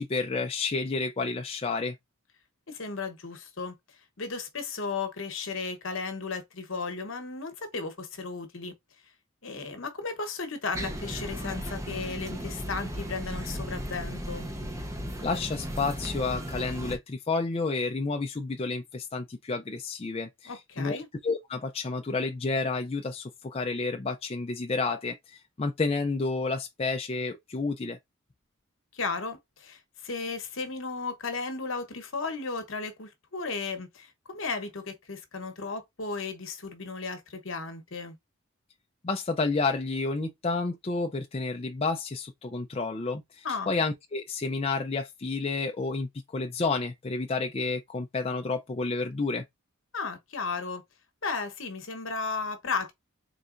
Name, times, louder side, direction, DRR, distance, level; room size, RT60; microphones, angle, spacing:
voice 1, 0.0-2.0 15.2-28.0 39.0-49.4, left 3 dB, 25° left, 0.4 m, -30 dB
voice 2, 2.7-3.7 4.2-8.7 9.4-14.5 20.4-21.1 28.9-38.2 43.4-43.7 49.9-50.8 51.2-52.9, left 4 dB, 65° left, 1.0 m, -35 dB
sound 1, 10.7-17.0, equal, 15° right, 0.6 m, -36 dB
4.0 x 3.3 x 2.5 m
head